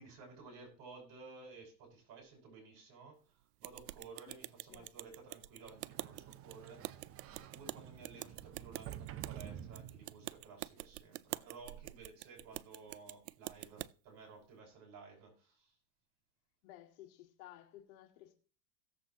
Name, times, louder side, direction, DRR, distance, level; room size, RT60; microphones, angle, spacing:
voice 1, 0.0-3.2 3.6-7.0 7.3-15.7, right 4 dB, 50° right, 6.3 m, -55 dB
sound 1, 3.6-13.9, right 17 dB, 90° right, 0.5 m, -47 dB
Sliding door, 5.7-10.4, right 10 dB, 30° right, 0.7 m, -50 dB
voice 2, 16.6-18.3, left 13 dB, 65° left, 1.9 m, -55 dB
17.5 x 7.4 x 2.9 m
supercardioid pair, 125°, 46 cm